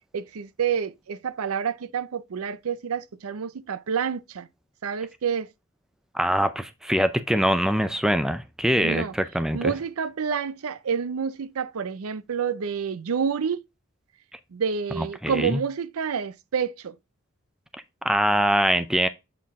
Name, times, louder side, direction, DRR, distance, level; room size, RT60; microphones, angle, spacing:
voice 1, 0.1-4.5 4.8-5.5 8.8-9.1 9.5-13.6 14.5-17.0, right 6 dB, 85° right, 0.5 m, -28 dB
voice 2, 6.1-9.7 15.0-15.6 18.0-19.1, equal, 5° right, 0.4 m, -23 dB
7.5 x 4.5 x 3.5 m
head